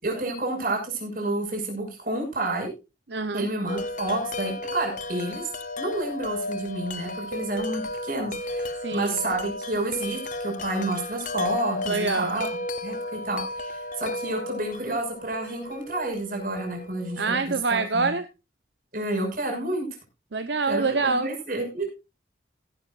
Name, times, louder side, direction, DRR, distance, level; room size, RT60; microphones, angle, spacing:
voice 1, 0.0-2.7 3.3-5.5 5.8-12.5 12.8-18.1 18.9-19.9 20.7-21.9, right 2 dB, 50° right, 2 dB, 6.3 m, -30 dB
voice 2, 3.1-3.5 8.8-9.2 11.9-12.3 17.2-18.2 20.3-21.3, right 4 dB, 70° right, 9 dB, 1.0 m, -25 dB
Wind chime, 3.7-17.6, left 2 dB, 45° left, 1.0 m, -34 dB
17.5 x 11.5 x 2.5 m, 0.27 s
head